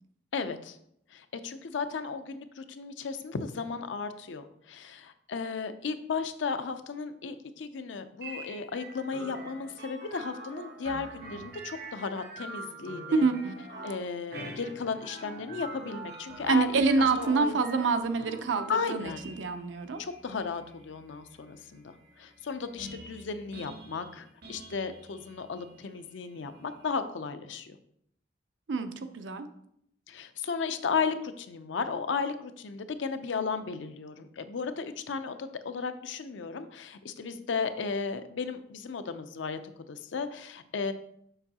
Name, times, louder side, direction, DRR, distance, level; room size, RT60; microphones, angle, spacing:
voice 1, 0.3-0.8 1.1-13.3 13.8-17.6 18.7-19.2 20.0-27.8 30.1-39.6 39.9-40.9, left 5 dB, 85° left, 10 dB, 0.5 m, -35 dB
sound 1, 8.2-26.9, right 2 dB, 55° right, 1.1 m, -46 dB
voice 2, 13.1-13.6 16.5-20.0 28.7-29.5, right 4 dB, 85° right, 8 dB, 0.6 m, -27 dB
6.8 x 5.4 x 2.8 m, 0.73 s
head